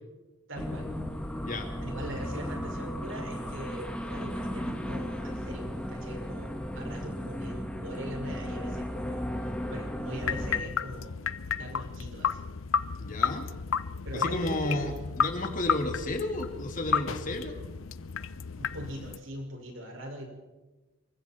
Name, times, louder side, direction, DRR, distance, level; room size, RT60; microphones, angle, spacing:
voice 1, 0.5-0.9 1.8-9.2 9.7-11.1 11.5-12.4 14.0-14.8 18.5-20.3, right 1 dB, 80° right, 1 dB, 6.0 m, -41 dB
sound 1, 0.6-10.6, equal, 5° left, 1.9 m, -35 dB
sound 2, 10.2-19.2, left 6 dB, 85° left, 0.7 m, -32 dB
voice 2, 13.0-13.5 14.1-17.6, left 1 dB, 40° left, 4 dB, 2.8 m, -32 dB
26.5 x 23.5 x 4.5 m, 1.1 s
head